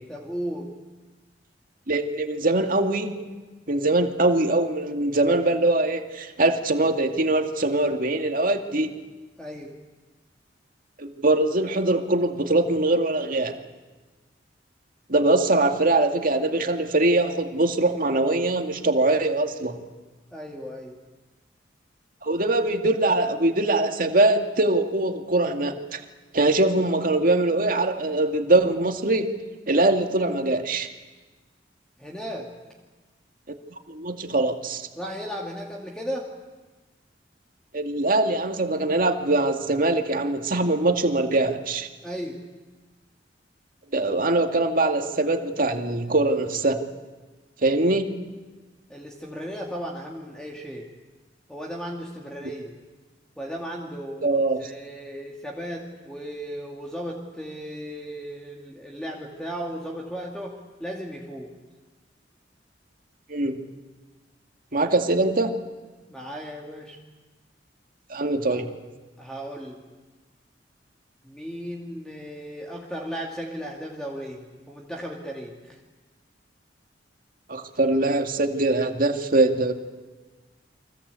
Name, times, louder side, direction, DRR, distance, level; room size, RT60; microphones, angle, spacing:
voice 1, 0.1-0.7 9.4-9.7 20.3-21.0 32.0-32.5 35.0-36.3 42.0-42.4 48.9-50.9 51.5-52.7 53.4-61.5 66.1-67.0 68.5-68.6 69.2-69.8 71.2-75.8, equal, 5° left, -1 dB, 2.3 m, -35 dB
voice 2, 1.9-3.2 3.7-8.9 11.0-13.6 15.1-19.8 22.2-26.0 26.3-29.3 29.7-30.9 33.9-34.9 37.7-41.9 43.9-46.8 47.6-48.2 54.2-54.6 63.3-63.6 64.7-65.5 68.1-68.7 77.5-79.7, right 2 dB, 50° right, 5 dB, 2.2 m, -22 dB
30.0 x 23.5 x 8.4 m, 1.3 s
head